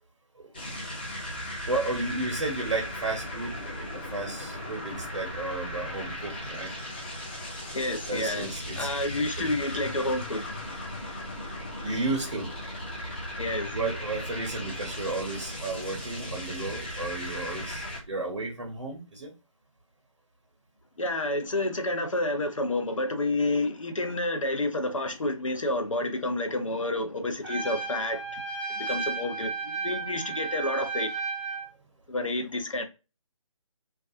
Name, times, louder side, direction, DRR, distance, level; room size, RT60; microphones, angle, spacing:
voice 1, 0.4-0.7 1.7-6.7 8.1-8.9 9.4-9.5 11.8-12.5 13.7-19.3, right 3 dB, 55° right, 0.7 m, -33 dB
sound 1, 0.5-18.0, left 1 dB, 20° left, 0.4 m, -37 dB
voice 2, 7.7-8.5 8.8-10.6 13.4-13.8 21.0-28.4 28.7-31.1 32.1-32.8, left 2 dB, 65° left, 0.7 m, -29 dB
Trumpet, 27.4-31.7, right 4 dB, ahead, 1.1 m, -33 dB
2.3 x 2.3 x 2.5 m
figure-of-eight pair, 150°, 18 cm